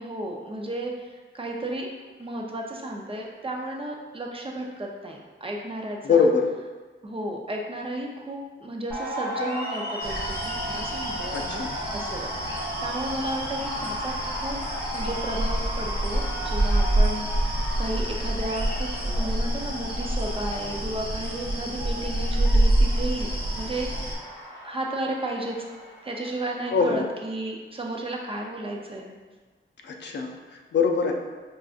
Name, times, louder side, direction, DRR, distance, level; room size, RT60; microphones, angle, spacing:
voice 1, 0.0-1.9 2.2-6.3 7.0-14.6 14.9-24.0 24.6-25.7 26.0-29.1, right 1 dB, 25° right, 0 dB, 0.5 m, -33 dB
voice 2, 6.0-6.5 11.3-11.7 26.7-27.1 29.8-31.1, left 5 dB, 55° left, 1 dB, 0.5 m, -23 dB
sound 1, 8.9-26.7, equal, 10° left, 1.0 m, -35 dB
sound 2, 10.0-24.1, right 1 dB, 50° right, 0.9 m, -27 dB
4.7 x 2.4 x 2.4 m, 1.3 s
cardioid pair, 85°, 21 cm